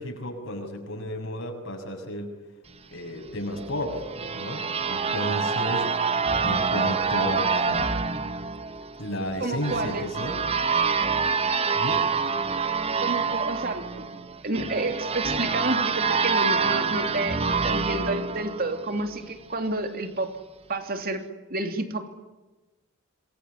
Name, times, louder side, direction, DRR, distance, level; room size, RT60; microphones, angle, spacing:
voice 1, 0.0-2.4 2.9-5.9 6.4-7.9 9.0-10.4 11.7-12.1, equal, 60° left, 3 dB, 7.1 m, -33 dB
sound 1, 3.6-19.2, right 5 dB, 30° right, 1.0 m, -26 dB
voice 2, 9.4-10.0 13.0-14.2 14.4-20.4 20.7-21.2 21.5-22.1, right 2 dB, 45° right, 7 dB, 3.0 m, -30 dB
27.0 x 22.0 x 9.7 m, 1.1 s
head